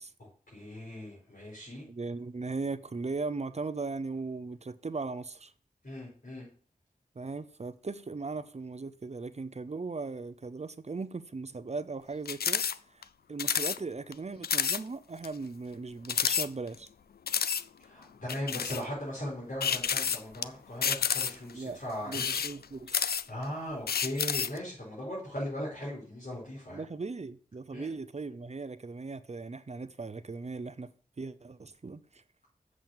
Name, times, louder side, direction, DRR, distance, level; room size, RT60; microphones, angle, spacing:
voice 1, 0.2-1.9 5.8-6.5 17.8-22.4 23.3-26.8 27.7-27.9, equal, 65° left, 4.8 m, -39 dB
voice 2, 1.9-5.5 7.2-12.6 12.9-16.9 21.5-21.8 22.1-23.1 26.7-30.9 31.2-32.2, right 3 dB, 45° right, 0.6 m, -38 dB
sound 1, 12.3-12.8 13.0-13.1 13.4-13.8 14.1-14.2 14.4-14.8 15.2-15.3 16.1-16.9 17.3-17.6 18.3-18.8 19.6-20.4 20.8-21.5 22.0-23.4 23.9-24.6, left 7 dB, 85° left, 0.4 m, -29 dB
7.7 x 6.2 x 7.2 m
wide cardioid pair, 65°, 16 cm